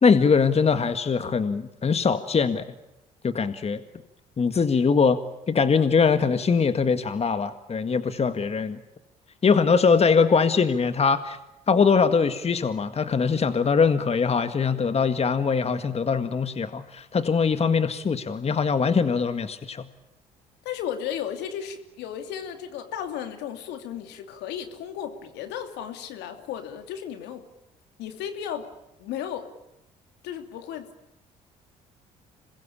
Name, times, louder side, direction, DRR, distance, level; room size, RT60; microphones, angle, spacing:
voice 1, 0.0-2.7 3.2-3.8 4.4-5.2 5.5-8.8 9.4-11.4 11.7-19.8, left 5 dB, 35° left, 10 dB, 1.9 m, -22 dB
voice 2, 20.6-27.5 28.0-28.7 29.0-29.5 30.2-30.9, left 9 dB, 75° left, 7 dB, 2.9 m, -34 dB
27.0 x 21.5 x 8.7 m, 0.90 s
hypercardioid pair, 60°, 18 cm